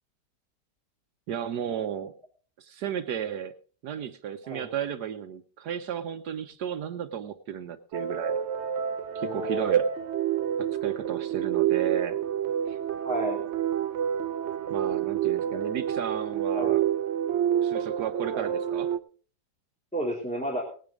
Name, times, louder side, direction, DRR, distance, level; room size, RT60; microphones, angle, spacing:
voice 1, 1.3-2.1 2.6-3.5 3.8-8.4 9.1-9.9 10.6-12.2 12.7-12.8 14.7-16.8 17.6-18.9, right 9 dB, 75° right, 9 dB, 1.4 m, -33 dB
sound 1, 7.9-19.0, right 10 dB, 55° right, 0.8 m, -28 dB
voice 2, 9.1-9.7 13.0-13.4 15.4-15.7 16.5-16.8 18.3-18.5 19.9-20.6, right 1 dB, 5° left, -2 dB, 2.7 m, -32 dB
18.5 x 10.5 x 3.7 m, 0.41 s
omnidirectional pair, 1.8 m